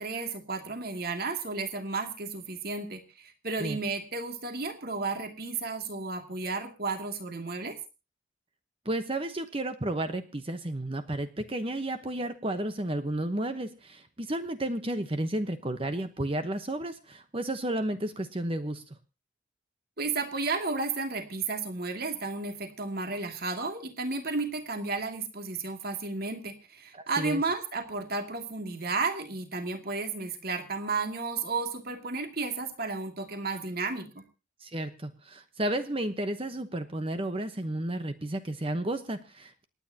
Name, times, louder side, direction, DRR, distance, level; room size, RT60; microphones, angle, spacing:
voice 1, 0.0-7.8 20.0-34.2, right 3 dB, 50° right, 5 dB, 2.5 m, -33 dB
voice 2, 8.8-18.8 26.9-27.4 34.6-39.6, right 1 dB, 30° right, 8 dB, 1.0 m, -32 dB
27.5 x 9.8 x 2.9 m, 0.30 s
head